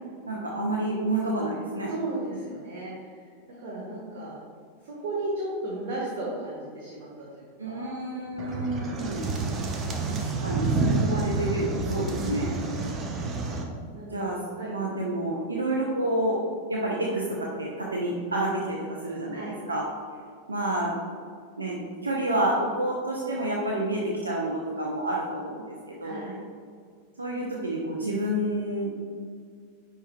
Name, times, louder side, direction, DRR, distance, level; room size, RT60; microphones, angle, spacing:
voice 1, 0.3-1.9 7.6-9.2 10.1-12.5 14.1-14.4 14.7-16.4 16.7-19.4 19.7-19.8 20.5-20.9 21.6-26.2 27.2-29.0, right 1 dB, 75° right, -2 dB, 0.7 m, -29 dB
voice 2, 1.9-4.4 4.8-8.0 11.9-12.5 13.9-14.7 19.3-19.5 26.0-26.4, right 2 dB, 50° right, -5 dB, 1.4 m, -35 dB
sound 1, 8.4-13.6, right 3 dB, 25° right, 0.7 m, -29 dB
10.0 x 4.8 x 2.3 m, 2.1 s
figure-of-eight pair, 90°, 0 cm